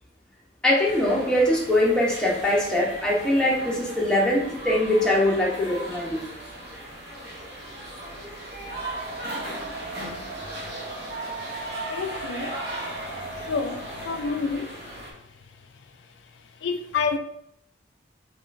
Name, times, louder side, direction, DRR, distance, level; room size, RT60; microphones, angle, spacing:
voice 1, 0.6-6.2, left 1 dB, 5° left, 0.8 m, -22 dB
sound 1, 0.8-15.1, right 1 dB, 60° right, 1.1 m, -37 dB
sound 2, 8.7-14.4, right 1 dB, 35° right, 1.1 m, -39 dB
voice 2, 11.9-12.5 13.5-14.7 16.6-17.2, left 5 dB, 75° left, 0.3 m, -28 dB
3.6 x 3.2 x 2.5 m
head